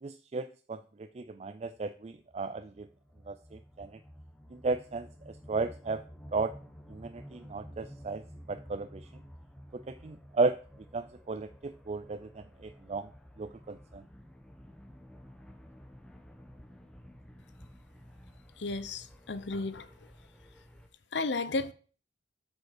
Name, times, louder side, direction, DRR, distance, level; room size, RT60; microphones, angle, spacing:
voice 1, 0.0-2.9 3.3-4.0 4.5-6.0 6.3-6.5 6.9-9.1 9.7-10.6 10.9-13.1 13.4-14.1, right 3 dB, 40° right, 0.4 m, -35 dB
sound 1, 1.7-20.9, equal, 5° left, 1.1 m, -52 dB
voice 2, 18.6-19.9 21.1-21.7, left 3 dB, 80° left, 0.8 m, -33 dB
7.9 x 5.2 x 6.5 m
head